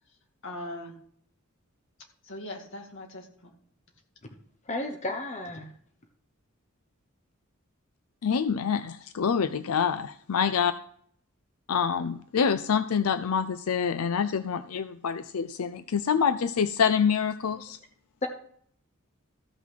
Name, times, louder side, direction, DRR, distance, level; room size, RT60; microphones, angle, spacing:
voice 1, 0.4-1.0 2.2-3.5, left 1 dB, 60° left, 2 dB, 2.2 m, -40 dB
voice 2, 4.7-5.7 18.2-18.3, left 2 dB, 35° left, 5 dB, 0.9 m, -32 dB
voice 3, 8.2-10.7 11.7-17.8, left 7 dB, 85° left, 11 dB, 0.5 m, -26 dB
14.5 x 5.9 x 5.9 m, 0.63 s
head